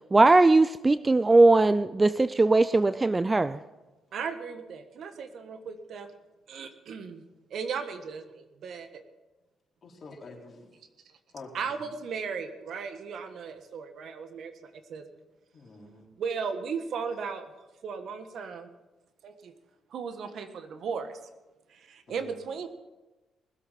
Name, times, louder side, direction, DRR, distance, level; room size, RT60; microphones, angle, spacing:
voice 1, 0.1-3.6, right 2 dB, 20° right, 15 dB, 0.4 m, -20 dB
voice 2, 4.1-6.1 6.5-7.2 7.5-9.0 11.5-15.0 16.2-17.5 17.8-18.7 19.2-19.5 19.9-21.2 21.7-22.7, right 6 dB, 65° right, 8 dB, 1.4 m, -36 dB
voice 3, 9.8-10.7 11.3-11.8 15.5-16.1 22.1-22.4, left 3 dB, 45° left, -1 dB, 4.0 m, -47 dB
20.0 x 8.3 x 5.8 m, 1.1 s
cardioid pair, 90°, 0 cm